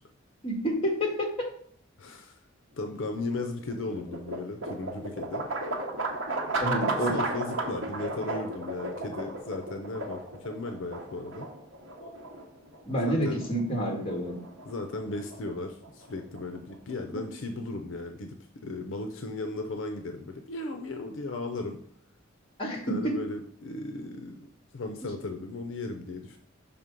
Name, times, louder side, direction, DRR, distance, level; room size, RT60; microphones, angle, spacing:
voice 1, 0.4-1.3 6.6-7.1 12.0-12.1 12.8-14.3 17.1-17.2 22.6-23.1, equal, 30° left, 0 dB, 1.7 m, -29 dB
voice 2, 2.0-2.4 2.7-5.4 6.8-11.5 13.0-13.4 14.6-18.4 18.6-21.8 22.9-26.4, left 2 dB, 70° left, 5 dB, 0.6 m, -36 dB
sound 1, 3.0-17.1, right 2 dB, 70° right, 1.0 m, -35 dB
6.0 x 3.7 x 5.2 m, 0.62 s
head